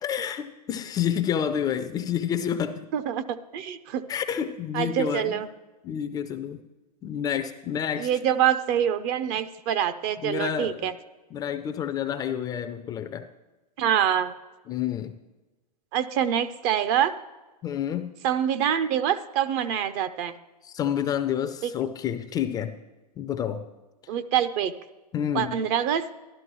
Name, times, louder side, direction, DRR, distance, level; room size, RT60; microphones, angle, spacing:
voice 1, 0.0-2.9 4.1-5.4 5.8-6.6 7.0-8.1 10.2-10.9 11.3-13.3 14.7-15.2 17.6-18.1 20.6-22.8 23.2-23.7 25.1-25.6, left 9 dB, 20° left, 8 dB, 0.4 m, -29 dB
voice 2, 2.9-4.0 4.7-5.5 8.0-10.9 13.8-14.3 15.9-17.1 18.2-20.3 21.6-21.7 24.1-24.7 25.3-26.0, right 9 dB, 35° right, 12 dB, 0.5 m, -25 dB
12.5 x 12.0 x 3.0 m, 1.1 s
hypercardioid pair, 125°, 21 cm